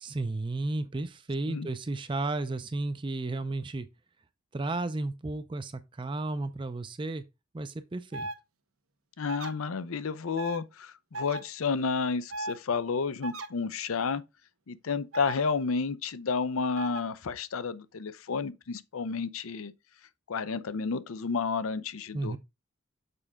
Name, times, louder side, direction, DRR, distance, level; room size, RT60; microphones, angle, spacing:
voice 1, 0.0-3.9 4.5-7.2 7.5-8.3 22.1-22.4, right 2 dB, 25° right, 0.4 m, -33 dB
sound 1, 8.1-8.3 9.3-9.5 10.4-10.6 11.1-11.4 12.3-12.6 13.2-13.5 15.1-15.4 16.8-17.0, right 2 dB, 85° right, 1.0 m, -35 dB
voice 2, 9.2-14.2 14.7-19.7 20.3-22.4, left 5 dB, 85° left, 0.6 m, -31 dB
6.8 x 4.9 x 3.5 m
head